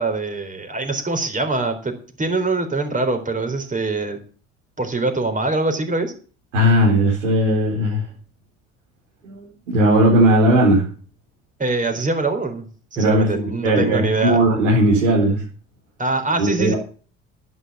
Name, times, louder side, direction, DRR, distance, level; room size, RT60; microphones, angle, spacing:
voice 1, 0.0-4.2 4.8-6.1 11.6-12.7 12.9-14.5 16.0-16.7, right 3 dB, 20° right, 6 dB, 4.1 m, -23 dB
voice 2, 6.5-8.0 9.2-10.8 13.0-13.3 13.6-15.4 16.4-16.7, right 1 dB, 80° right, -4 dB, 4.6 m, -17 dB
11.0 x 9.4 x 7.5 m, 0.40 s
hypercardioid pair, 65°, 36 cm